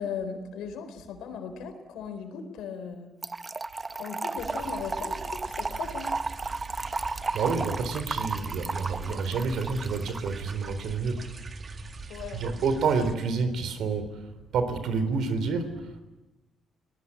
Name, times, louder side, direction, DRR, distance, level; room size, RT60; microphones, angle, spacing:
voice 1, 0.0-3.1 3.9-6.1 12.1-12.5, left 6 dB, 85° left, 7 dB, 3.9 m, -37 dB
Trickle dribble / Fill (with liquid), 3.2-10.3, right 3 dB, 25° right, 0.8 m, -34 dB
sound 1, 4.4-13.1, right 4 dB, 40° right, 2.0 m, -42 dB
voice 2, 7.3-11.2 12.3-14.2 14.5-15.7, right 4 dB, 75° right, 11 dB, 3.8 m, -28 dB
29.5 x 19.5 x 8.9 m, 1.1 s
cardioid pair, 90°, 0 cm